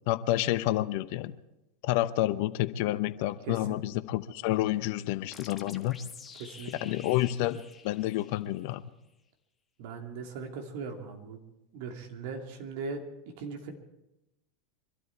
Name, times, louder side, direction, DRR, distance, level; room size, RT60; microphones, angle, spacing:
voice 1, 0.1-1.3 1.8-6.0 6.8-8.8, left 15 dB, 60° left, 14 dB, 0.7 m, -29 dB
voice 2, 3.5-3.8 6.4-6.7 9.8-11.4 11.7-13.0 13.4-13.7, right 4 dB, 60° right, 3 dB, 2.7 m, -39 dB
sound 1, 5.3-8.8, left 5 dB, 20° left, 1.4 m, -49 dB
25.0 x 12.5 x 4.6 m, 0.93 s
hypercardioid pair, 90°, 0 cm